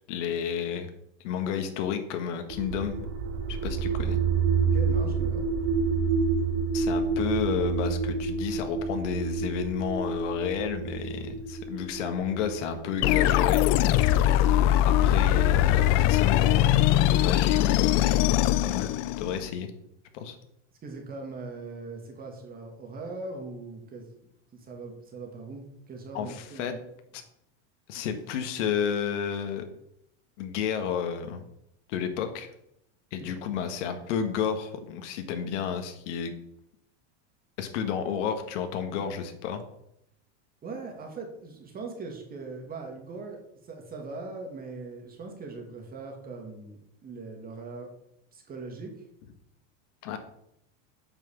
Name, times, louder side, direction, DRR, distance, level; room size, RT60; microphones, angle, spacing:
voice 1, 0.1-0.9 1.2-3.1 3.5-4.2 6.7-13.6 15.0-19.7 20.2-20.4 26.1-26.8 27.1-27.2 27.9-29.6 30.4-31.4 31.9-32.5 33.1-36.4 37.6-39.6 50.0-50.2, left 7 dB, 75° left, 7 dB, 1.6 m, -31 dB
sound 1, 2.5-14.3, right 5 dB, 60° right, 1.5 m, -29 dB
voice 2, 4.6-5.4 14.5-14.7 20.8-24.1 24.5-26.7 33.2-33.4 40.6-47.9 48.3-49.0, right 3 dB, 25° right, 1 dB, 2.3 m, -40 dB
sound 2, 13.0-19.5, left 12 dB, 45° left, 0.5 m, -22 dB
8.9 x 6.1 x 7.3 m, 0.77 s
supercardioid pair, 145°, 36 cm